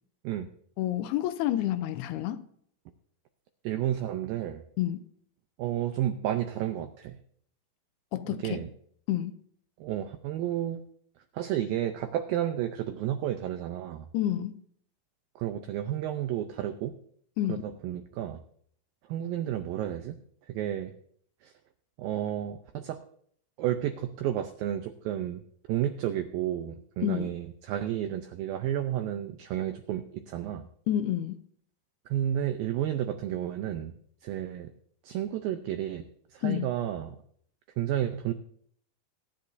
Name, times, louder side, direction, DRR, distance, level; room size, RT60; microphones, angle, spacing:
voice 1, 0.8-2.5 4.8-5.0 8.1-8.6 9.1-9.4 14.1-14.5 17.4-17.7 27.0-27.3 30.9-31.4 36.4-36.7, left 12 dB, 80° left, 2.5 m, -29 dB
voice 2, 3.6-4.6 5.6-7.2 8.3-8.7 9.8-10.8 11.3-14.1 15.4-16.9 17.5-18.4 19.1-20.2 20.4-21.0 21.4-21.5 22.0-23.0 23.6-25.4 25.7-30.7 32.1-34.0 34.2-34.7 35.0-36.1 36.3-37.2 37.8-38.3, right 11 dB, 85° right, 2.0 m, -31 dB
23.5 x 10.0 x 2.6 m
omnidirectional pair, 4.9 m